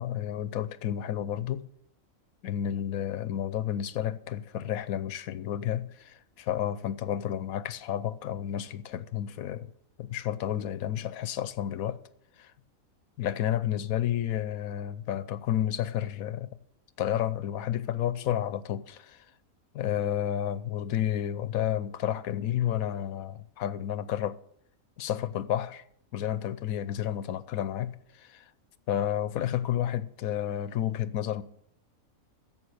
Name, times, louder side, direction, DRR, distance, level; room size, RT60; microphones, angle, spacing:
voice 1, 0.0-1.7 2.4-9.7 10.0-12.0 12.4-12.5 13.2-16.5 17.0-19.3 19.7-24.4 25.0-25.8 26.1-28.5 28.9-31.4, left 11 dB, 85° left, 1.1 m, -31 dB
11.5 x 7.8 x 7.8 m
omnidirectional pair, 1.4 m